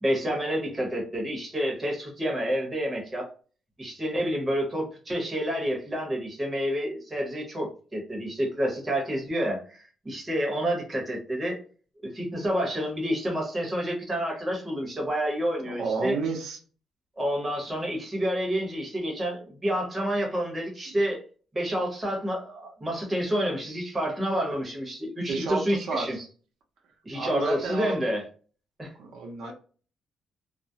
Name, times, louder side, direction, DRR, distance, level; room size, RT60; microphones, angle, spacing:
voice 1, 0.0-3.3 3.8-11.6 12.0-16.2 17.2-21.2 21.5-26.2 27.0-28.2 28.8-28.9, equal, 20° right, -1 dB, 0.9 m, -29 dB
voice 2, 15.7-16.6 25.3-26.1 27.1-28.0 28.9-29.5, right 4 dB, 80° right, 1 dB, 0.5 m, -31 dB
2.3 x 2.0 x 2.7 m, 0.39 s
cardioid pair, 140°, 0 cm